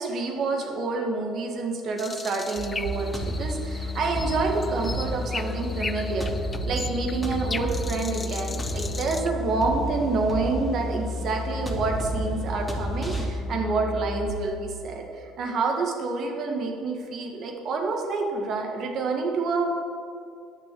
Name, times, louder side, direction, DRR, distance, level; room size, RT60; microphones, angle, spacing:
voice 1, 0.0-6.3 6.7-19.7, right 3 dB, 55° right, 2 dB, 1.9 m, -28 dB
sound 1, 2.0-9.3, left 4 dB, 25° left, 0.5 m, -38 dB
sound 2, 2.6-13.3, right 3 dB, 5° left, 2.3 m, -35 dB
sound 3, 2.8-14.3, left 3 dB, 75° right, 1.8 m, -33 dB
10.0 x 6.0 x 7.8 m, 2.4 s
hypercardioid pair, 60°, 0 cm